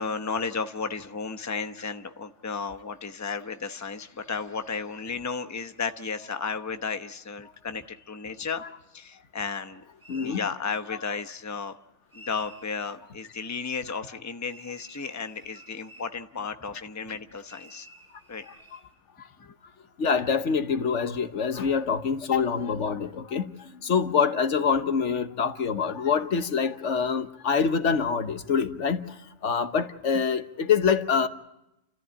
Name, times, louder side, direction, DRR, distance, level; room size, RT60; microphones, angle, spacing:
voice 1, 0.0-8.6 8.9-9.8 10.2-11.8 12.1-17.9 18.3-18.5 19.4-19.5, left 5 dB, 15° left, 0.8 m, -33 dB
sound 1, 10.0-10.5 12.1-12.7 14.4-16.1 17.5-18.9, equal, 20° right, 4.5 m, -50 dB
voice 2, 10.1-10.5 18.5-18.8 20.0-29.1 29.4-31.3, left 6 dB, 80° left, 1.4 m, -25 dB
30.0 x 14.0 x 9.8 m
omnidirectional pair, 1.2 m